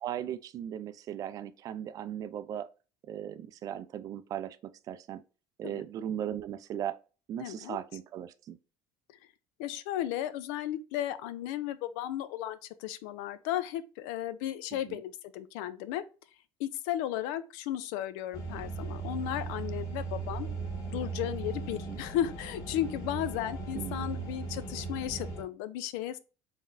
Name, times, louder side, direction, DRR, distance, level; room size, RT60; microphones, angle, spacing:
voice 1, 0.0-2.7 3.1-4.6 4.9-5.2 5.6-7.0 7.3-8.6 14.7-15.0 21.9-22.0 23.7-24.2, right 10 dB, 35° right, 0.3 m, -37 dB
voice 2, 7.4-7.8 9.6-16.0 16.6-20.5 20.9-26.2, left 12 dB, 90° left, 0.5 m, -35 dB
sound 1, 18.3-25.4, right 4 dB, 35° left, 1.5 m, -38 dB
3.8 x 3.5 x 2.6 m
cardioid pair, 155°, 10 cm